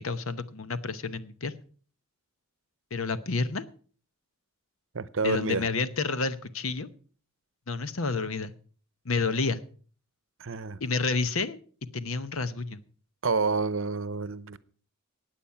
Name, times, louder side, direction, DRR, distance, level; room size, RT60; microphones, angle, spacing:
voice 1, 0.0-1.5 2.9-3.6 5.2-6.9 7.7-8.5 9.0-9.6 10.8-11.6 11.9-12.8, left 4 dB, 75° left, 0.9 m, -29 dB
voice 2, 4.9-5.7 10.4-10.8 13.2-14.6, right 4 dB, 65° right, 0.8 m, -28 dB
16.0 x 9.1 x 5.7 m
head